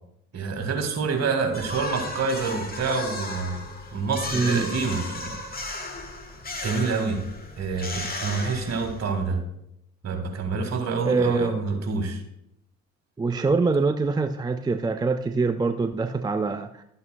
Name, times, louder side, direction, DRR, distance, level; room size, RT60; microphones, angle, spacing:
voice 1, 0.3-3.6 3.9-5.4 5.7-5.9 6.6-7.2 7.6-9.4 10.0-12.2, right 4 dB, 45° right, 5 dB, 1.9 m, -27 dB
sound 1, 1.5-9.2, left 2 dB, 25° left, 1.7 m, -35 dB
voice 2, 4.3-4.7 11.0-11.6 13.2-16.8, right 4 dB, 10° right, 9 dB, 0.4 m, -24 dB
12.0 x 8.1 x 2.2 m, 0.76 s
hypercardioid pair, 55°, 35 cm